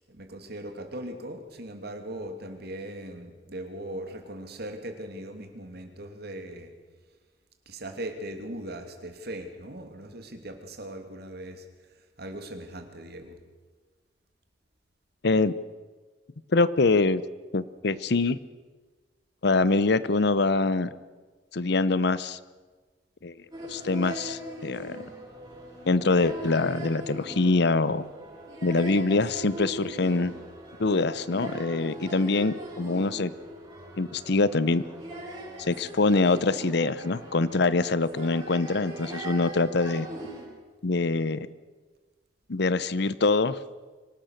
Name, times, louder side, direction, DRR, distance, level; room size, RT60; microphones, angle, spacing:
voice 1, 0.1-6.7 7.7-11.7 12.2-13.4, right 1 dB, 60° right, 6 dB, 2.8 m, -39 dB
voice 2, 15.2-15.5 16.5-17.2 17.5-18.4 19.4-20.9 21.5-22.4 23.2-23.3 23.7-25.0 25.8-28.0 28.6-30.3 30.8-33.3 34.0-34.8 35.6-40.1 40.8-41.5 42.5-43.6, left 3 dB, 65° left, 17 dB, 0.8 m, -24 dB
sound 1, 23.5-40.5, right 1 dB, 25° right, 6.7 m, -41 dB
25.0 x 18.0 x 6.5 m, 1.4 s
head